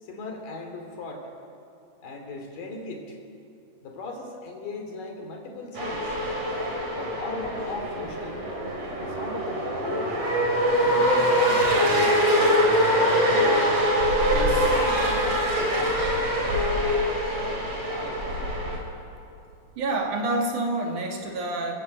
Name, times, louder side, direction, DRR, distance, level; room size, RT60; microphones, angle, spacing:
voice 1, 0.0-1.3 2.0-3.2 3.8-6.1 6.9-8.5 9.0-10.1 10.6-12.7 13.1-13.9 14.6-16.0 18.0-18.3, left 3 dB, 75° left, 2 dB, 4.7 m, -37 dB
sound 1, 5.7-18.8, equal, 45° right, 4.6 m, -23 dB
voice 2, 14.3-14.8 19.8-21.7, right 2 dB, 65° right, 1 dB, 3.8 m, -28 dB
29.5 x 15.5 x 8.2 m, 2.7 s
omnidirectional pair, 3.9 m